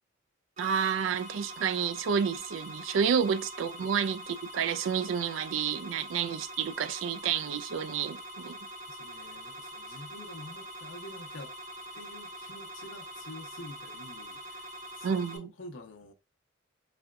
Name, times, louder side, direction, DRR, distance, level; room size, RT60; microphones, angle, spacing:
sound 1, 0.6-15.4, right 1 dB, 40° right, 0.8 m, -44 dB
voice 1, 0.6-4.2 4.5-8.6 15.0-15.5, right 7 dB, 80° right, 0.4 m, -30 dB
voice 2, 8.9-11.5 11.9-16.1, left 1 dB, 85° left, 0.8 m, -47 dB
4.2 x 2.2 x 2.4 m
head